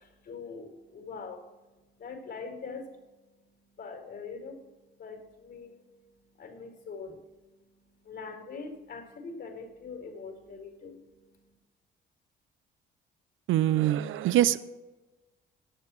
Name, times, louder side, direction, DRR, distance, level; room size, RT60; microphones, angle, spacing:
voice 1, 0.0-1.4 2.0-3.0 3.8-4.6 5.0-5.9 6.3-7.5 7.8-11.5, left 4 dB, 65° left, 3 dB, 4.9 m, -43 dB
voice 2, 13.5-14.6, right 13 dB, 85° right, 16 dB, 0.6 m, -24 dB
17.5 x 12.0 x 3.2 m, 1.1 s
cardioid pair, 90°, 20 cm